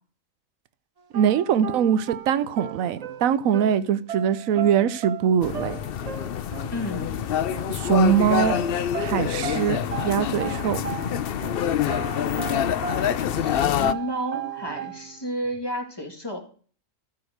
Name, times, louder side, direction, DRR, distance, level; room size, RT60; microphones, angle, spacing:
sound 1, 1.1-11.6 11.9-13.6 13.8-15.3, right 7 dB, 65° right, 0.4 m, -36 dB
voice 1, 1.1-5.8 7.7-8.6 9.0-9.8 10.0-10.8, right 8 dB, 85° right, 1.1 m, -22 dB
sound 2, 5.4-13.9, left 9 dB, 60° left, 0.7 m, -26 dB
voice 2, 6.7-7.2 13.3-16.4, equal, 20° left, 2.0 m, -32 dB
13.5 x 4.8 x 6.4 m
omnidirectional pair, 1.4 m